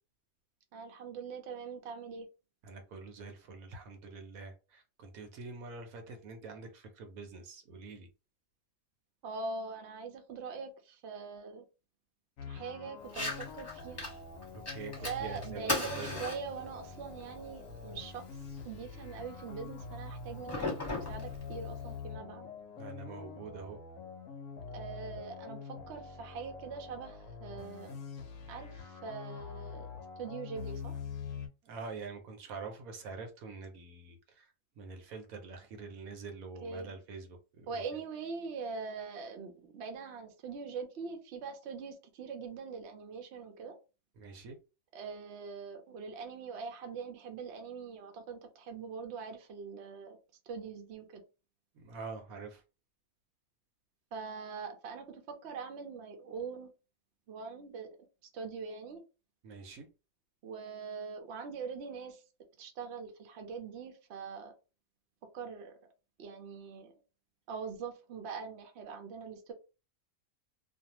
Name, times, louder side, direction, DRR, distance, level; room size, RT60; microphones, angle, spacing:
voice 1, 0.7-2.3 9.2-11.6 12.5-14.1 15.0-18.2 18.6-20.7 20.9-22.5 24.7-28.0 28.5-29.9 30.2-31.0 36.6-36.9 37.7-43.8 44.9-50.2 50.5-51.2 54.1-56.7 57.3-57.9 58.2-59.0 60.4-62.2 62.6-64.5 65.3-65.8 66.2-66.9 67.5-69.5, right 5 dB, 60° right, 0.8 m, -42 dB
voice 2, 2.6-8.1 14.5-16.2 22.8-23.8 31.6-34.5 34.8-37.8 44.2-44.6 51.7-52.6 59.4-59.9, right 4 dB, 75° right, 1.1 m, -45 dB
sound 1, 12.4-31.5, left 5 dB, 70° left, 0.9 m, -45 dB
Fire, 13.0-22.0, left 2 dB, 10° left, 1.0 m, -40 dB
2.5 x 2.3 x 2.9 m
omnidirectional pair, 1.5 m